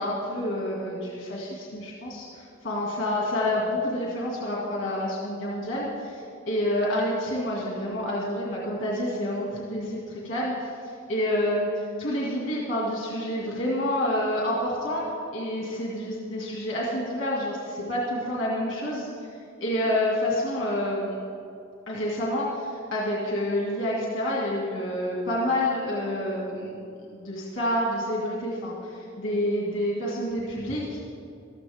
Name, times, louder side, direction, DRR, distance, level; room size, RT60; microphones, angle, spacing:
voice 1, 0.0-15.0 15.3-19.3 19.6-21.2 21.9-26.7 27.1-31.0, left 1 dB, 65° left, -4 dB, 2.1 m, -28 dB
15.0 x 13.5 x 3.6 m, 2.5 s
head